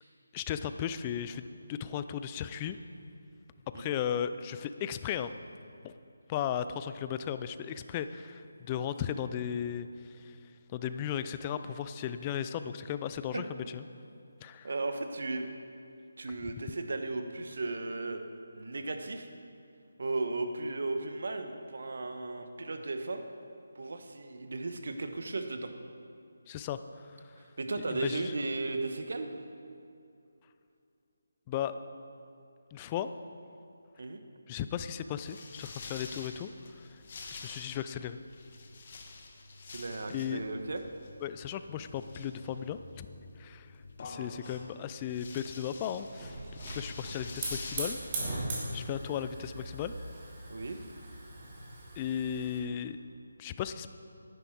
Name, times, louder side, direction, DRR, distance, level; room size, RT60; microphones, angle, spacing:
voice 1, 0.3-2.8 3.7-5.3 5.8-5.9 6.3-10.4 10.7-13.8 14.4-14.7 26.5-26.8 27.2-27.3 27.8-28.3 31.5-31.8 32.7-33.1 34.5-36.5 37.3-38.2 40.1-40.4 41.2-43.1 43.4-43.7 44.0-46.4 46.7-48.0 48.7-50.0 52.0-53.0 53.4-53.9, left 9 dB, 20° left, 11 dB, 0.4 m, -36 dB
voice 2, 14.6-15.5 16.2-18.2 18.5-19.3 20.0-23.2 23.7-25.7 27.6-29.3 34.0-34.2 39.7-40.8 50.5-50.8, right 3 dB, 65° right, 6 dB, 1.1 m, -35 dB
sound 1, 35.2-48.0, left 3 dB, 40° left, 1.2 m, -47 dB
Hiss / Fire, 45.7-52.6, right 2 dB, 30° right, 2.6 m, -40 dB
11.0 x 10.0 x 4.6 m, 2.5 s
figure-of-eight pair, 160°, 0 cm